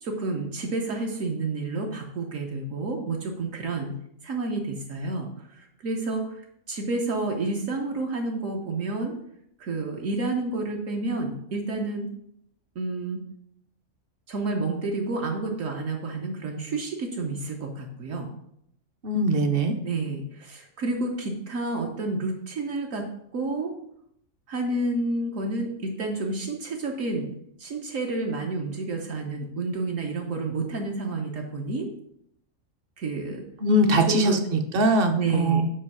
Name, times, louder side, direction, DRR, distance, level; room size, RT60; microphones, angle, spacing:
voice 1, 0.0-4.0 4.2-6.4 6.7-9.2 9.6-12.1 12.7-13.2 14.3-18.3 19.8-23.0 23.3-23.7 24.5-27.3 27.6-31.9 33.0-33.4 34.1-34.4 35.2-35.6, right 3 dB, 70° right, 1 dB, 1.2 m, -30 dB
voice 2, 19.0-19.8 33.6-35.6, right 1 dB, 50° right, 6 dB, 0.8 m, -21 dB
5.5 x 4.5 x 5.5 m, 0.73 s
omnidirectional pair, 1.5 m